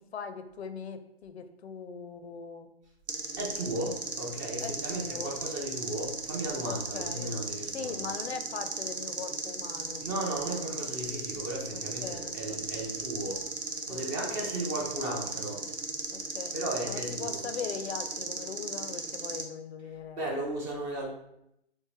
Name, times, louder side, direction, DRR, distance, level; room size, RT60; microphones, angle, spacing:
voice 1, 0.0-2.7 4.2-4.3 4.6-5.4 6.7-7.4 7.7-10.0 11.7-12.9 13.9-14.6 16.1-16.6 16.9-20.3, left 6 dB, 75° left, 9 dB, 0.5 m, -41 dB
sound 1, 3.1-19.4, right 4 dB, 85° right, 0.7 m, -36 dB
voice 2, 3.4-8.1 10.0-13.5 13.9-15.7 16.5-17.5 20.2-21.1, right 1 dB, 20° right, -1 dB, 0.4 m, -35 dB
3.7 x 2.5 x 3.0 m, 0.79 s
figure-of-eight pair, 120°, 33 cm